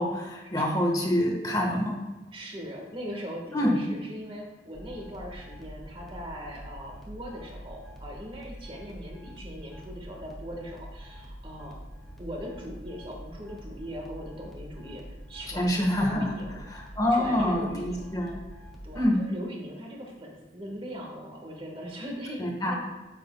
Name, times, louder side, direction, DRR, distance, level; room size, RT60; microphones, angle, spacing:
voice 1, 0.0-2.0 3.5-3.8 15.5-16.3 16.7-18.3 18.9-19.2 22.4-22.7, left 1 dB, 20° left, 0 dB, 1.3 m, -26 dB
voice 2, 2.3-11.8 12.2-16.6 17.1-18.1 18.8-22.7, equal, 30° right, 0 dB, 1.5 m, -40 dB
sound 1, 4.7-19.0, equal, ahead, 1.2 m, -45 dB
9.5 x 7.6 x 2.2 m, 1.1 s
head